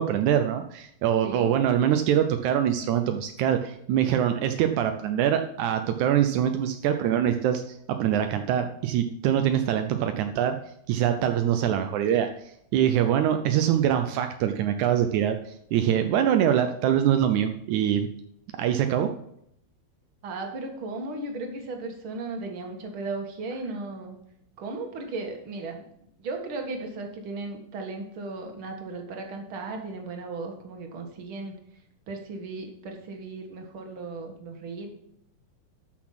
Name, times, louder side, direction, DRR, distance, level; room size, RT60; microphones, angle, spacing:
voice 1, 0.0-10.6 10.9-12.3 12.7-15.4 15.7-18.1 18.6-19.1, right 10 dB, 85° right, 7 dB, 1.7 m, -24 dB
voice 2, 1.2-1.6 20.2-24.2 24.6-25.9 26.2-31.5 32.1-34.9, right 3 dB, 45° right, 3 dB, 2.1 m, -36 dB
12.0 x 6.2 x 5.9 m, 0.73 s
omnidirectional pair, 4.2 m